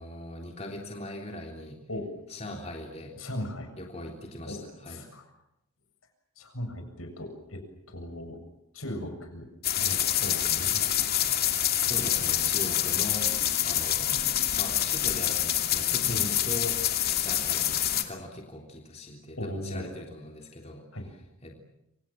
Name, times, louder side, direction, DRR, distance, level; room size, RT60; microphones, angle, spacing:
voice 1, 0.0-1.8 2.3-3.2 3.7-5.1 11.8-13.3 13.7-20.8 21.4-21.6, left 1 dB, 30° left, 1 dB, 3.5 m, -40 dB
voice 2, 3.2-3.7 4.5-5.3 6.4-8.4 8.7-9.5 9.8-10.9 16.1-16.4 19.4-19.9 20.9-21.1, left 1 dB, 75° left, 5 dB, 7.6 m, -37 dB
sound 1, 9.6-18.0, left 11 dB, 45° left, 2.6 m, -26 dB
27.0 x 27.0 x 7.5 m, 0.84 s
head